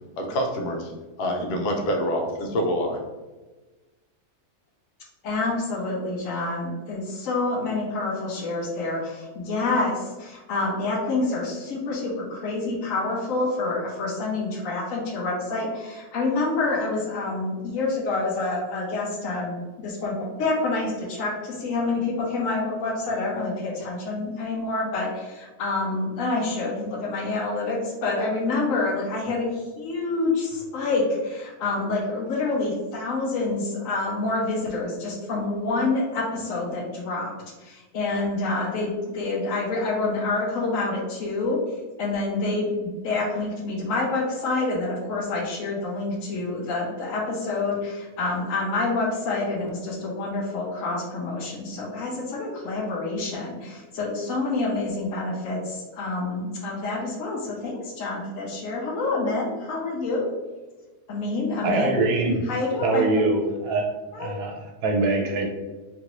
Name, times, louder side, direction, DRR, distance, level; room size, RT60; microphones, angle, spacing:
voice 1, 0.2-0.9 1.2-3.0, equal, 85° left, 2 dB, 1.2 m, -26 dB
voice 2, 5.2-37.3 37.6-41.6 42.0-60.3 61.1-62.0 62.5-63.0 64.1-64.3, left 3 dB, 65° left, -1 dB, 1.0 m, -27 dB
voice 3, 61.6-62.4 62.8-63.9 64.2-65.5, right 3 dB, 75° right, 2 dB, 1.0 m, -23 dB
3.0 x 2.6 x 2.9 m, 1.2 s
omnidirectional pair, 1.6 m